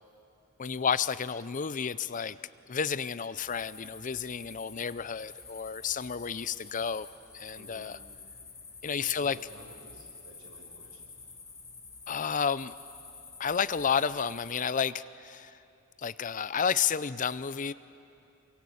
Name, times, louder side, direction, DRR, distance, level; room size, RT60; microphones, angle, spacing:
voice 1, 0.6-2.4 2.7-7.1 7.3-8.0 8.8-9.4 12.1-12.7 13.4-15.5 16.0-17.7, left 6 dB, 35° left, 16 dB, 0.5 m, -31 dB
sound 1, 3.3-14.7, left 4 dB, 15° left, 1.6 m, -49 dB
voice 2, 7.6-7.9 8.9-11.1, right 1 dB, 90° right, 0 dB, 5.9 m, -53 dB
26.5 x 23.5 x 8.6 m, 2.8 s
head